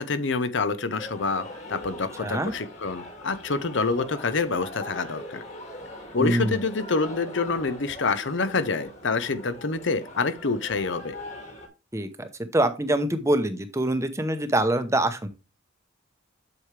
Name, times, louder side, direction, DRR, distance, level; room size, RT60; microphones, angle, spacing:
voice 1, 0.0-5.4 6.1-11.1, left 4 dB, 65° left, 0.7 m, -27 dB
sound 1, 1.0-11.7, left 1 dB, 35° left, 2.3 m, -41 dB
voice 2, 2.2-2.5 6.2-6.6 11.9-15.3, right 1 dB, 15° right, 0.8 m, -25 dB
7.8 x 7.2 x 3.3 m
head